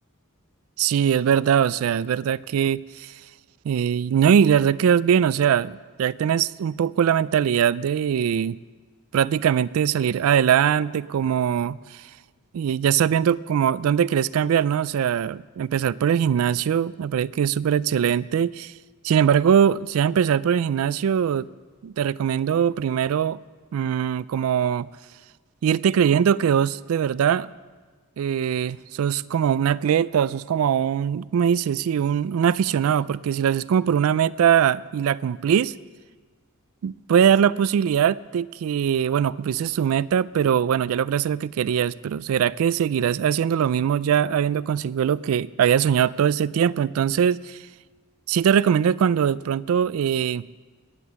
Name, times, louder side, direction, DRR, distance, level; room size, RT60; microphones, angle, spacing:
voice 1, 0.8-3.1 3.6-8.6 9.1-12.0 12.5-18.7 19.0-21.5 21.8-23.4 23.7-24.9 25.6-27.5 28.2-35.7 36.8-47.6 48.3-50.4, right 8 dB, 75° right, 19 dB, 0.3 m, -21 dB
19.5 x 8.3 x 6.9 m, 1.4 s
head